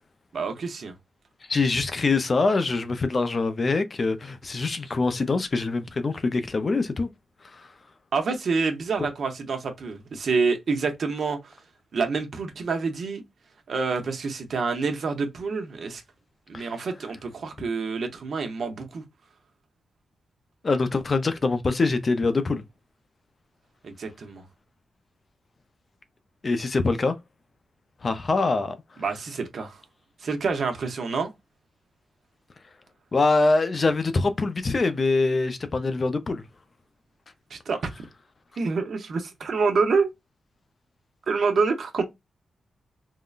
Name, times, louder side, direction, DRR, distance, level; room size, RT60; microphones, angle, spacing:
voice 1, 0.3-0.9 8.1-11.6 11.9-13.2 13.7-16.0 16.5-19.0 23.8-24.4 29.0-29.8 30.2-31.3 37.5-37.8 38.6-40.1 41.3-42.0, right 4 dB, 60° right, 0.8 m, -27 dB
voice 2, 1.5-7.1 7.5-7.7 16.5-16.7 20.6-22.6 26.4-27.2 28.0-28.7 33.1-36.4, left 3 dB, 35° left, 0.4 m, -24 dB
3.7 x 2.1 x 2.3 m
wide cardioid pair, 115°, 0 cm